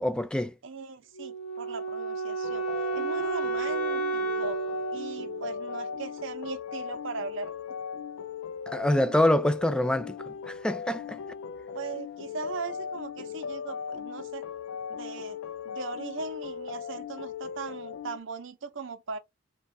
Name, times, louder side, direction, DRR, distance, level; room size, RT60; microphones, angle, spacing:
voice 1, 0.0-0.5 8.7-11.2, left 1 dB, 5° left, 0.4 m, -26 dB
voice 2, 0.6-2.6 2.9-4.6 4.9-7.5 11.7-14.4 14.9-15.4 15.6-19.2, right 4 dB, 70° right, 0.7 m, -39 dB
Wind instrument woodwind instrument, 1.2-6.2, right 4 dB, 70° left, 0.8 m, -32 dB
sound 1, 2.4-18.2, left 7 dB, 85° left, 0.3 m, -38 dB
3.5 x 2.3 x 4.1 m
head